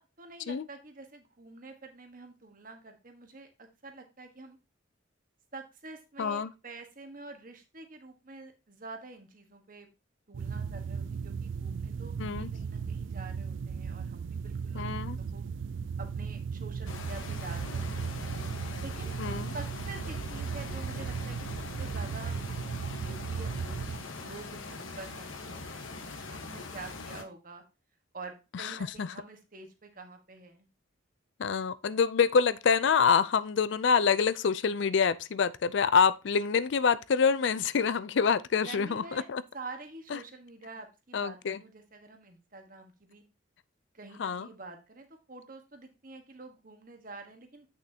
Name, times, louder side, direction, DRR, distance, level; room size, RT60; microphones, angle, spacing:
voice 1, 0.0-4.6 5.5-9.9 10.3-15.4 16.0-18.3 18.8-19.1 19.5-22.4 23.0-27.6 28.1-30.7 38.5-39.3 39.5-43.2 43.9-47.7, right 3 dB, 45° right, 1.4 m, -47 dB
voice 2, 6.2-6.5 12.2-12.5 14.7-15.2 19.2-19.5 28.5-28.7 29.0-29.1 31.4-39.4 40.1-40.2 41.1-41.6 44.2-44.5, left 6 dB, 65° left, 0.4 m, -26 dB
sound 1, 10.3-24.0, right 6 dB, 70° right, 0.3 m, -36 dB
sound 2, 16.9-27.2, left 3 dB, 85° left, 1.2 m, -42 dB
8.4 x 6.2 x 2.8 m
head